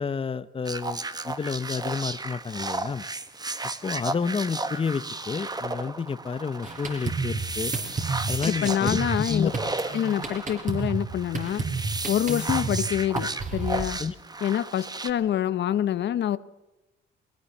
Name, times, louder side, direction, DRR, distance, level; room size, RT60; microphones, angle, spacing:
voice 1, 0.0-3.0 3.8-7.7 8.3-9.0 9.3-9.5 9.8-9.9 12.3-12.5 14.0-14.1, left 5 dB, 25° left, 14 dB, 0.8 m, -30 dB
sound 1, 0.7-15.1, right 2 dB, 20° right, 1.3 m, -34 dB
Drum kit, 6.6-13.9, right 4 dB, 40° right, 5.1 m, -32 dB
voice 2, 8.4-9.5 9.9-11.6 12.1-14.0 14.4-16.4, left 10 dB, 65° left, 14 dB, 0.8 m, -26 dB
21.0 x 19.0 x 7.2 m, 1.0 s
cardioid pair, 90°, 20 cm